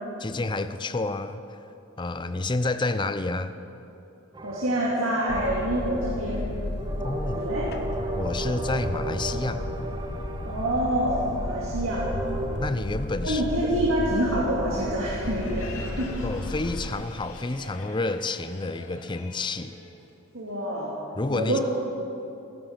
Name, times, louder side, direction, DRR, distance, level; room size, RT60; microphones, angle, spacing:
voice 1, 0.2-1.4 2.0-3.6 7.0-7.5 8.1-9.7 12.6-13.4 16.2-19.8 21.2-21.6, left 2 dB, 25° left, 11 dB, 0.5 m, -29 dB
sound 1, 4.3-6.1 6.8-12.7, right 1 dB, 20° right, 0.8 m, -35 dB
voice 2, 4.4-6.5 7.3-7.7 10.5-12.1 13.2-16.2 20.3-21.0 21.3-21.6, right 1 dB, 90° right, -5 dB, 2.4 m, -26 dB
Boat Water vehicle, 5.3-16.9, left 1 dB, 55° left, 1.0 m, -33 dB
Crowd, 15.2-20.7, left 2 dB, 90° left, 2.3 m, -44 dB
16.0 x 13.5 x 5.9 m, 2.9 s
head